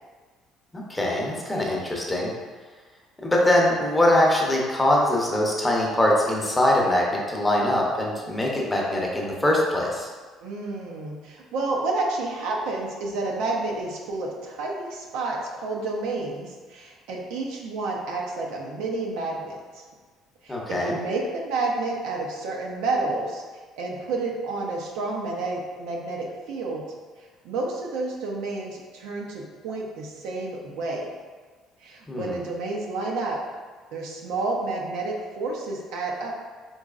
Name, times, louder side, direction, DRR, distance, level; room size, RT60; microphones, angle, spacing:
voice 1, 0.7-2.3 3.2-10.1 20.5-21.0 32.1-32.4, left 1 dB, 15° left, -2 dB, 0.7 m, -22 dB
voice 2, 10.4-19.8 20.4-23.4 23.8-26.8 27.4-31.1 31.8-33.4 33.9-36.3, right 3 dB, 85° right, -1 dB, 0.6 m, -30 dB
3.9 x 3.0 x 2.4 m, 1.4 s
cardioid pair, 110°, 0 cm